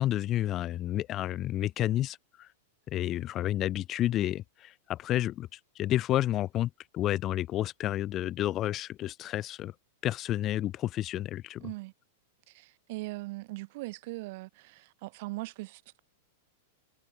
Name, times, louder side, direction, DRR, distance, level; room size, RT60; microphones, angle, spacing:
voice 1, 0.0-2.5 2.9-9.7 10.0-11.7, left 13 dB, 35° left, 1.3 m, -30 dB
voice 2, 11.6-11.9 12.5-16.0, right 22 dB, 55° right, 4.3 m, -40 dB
hypercardioid pair, 110°, 0 cm